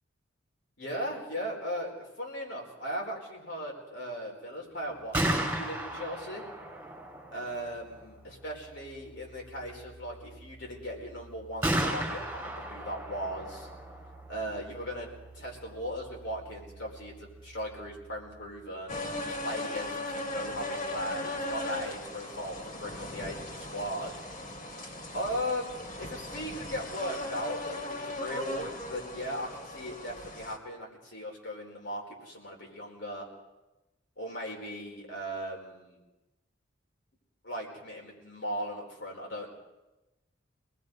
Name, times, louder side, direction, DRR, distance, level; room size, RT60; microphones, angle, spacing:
voice 1, 0.8-6.4 7.3-13.7 14.3-18.9 19.2-24.1 25.1-33.3 34.2-36.0 37.4-39.5, equal, 65° left, 0 dB, 4.6 m, -38 dB
Gunshot gunfire, 4.9-18.7, right 1 dB, 10° right, 5.0 m, -37 dB
sound 1, 18.9-30.6, left 1 dB, 40° left, 2.5 m, -38 dB
26.0 x 20.0 x 5.3 m, 1.0 s
head